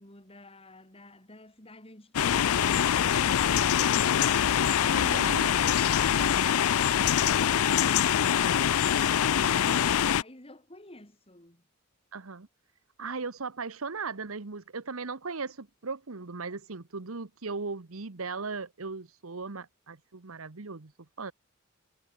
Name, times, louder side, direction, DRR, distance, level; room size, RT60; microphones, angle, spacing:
voice 1, 0.0-5.5 9.1-11.6, left 1 dB, 25° left, 5.8 m, -49 dB
sound 1, 2.1-10.2, left 9 dB, 80° left, 0.5 m, -24 dB
voice 2, 4.9-5.5 12.1-12.5 13.0-20.9 21.2-21.3, right 4 dB, 70° right, 1.2 m, -37 dB
head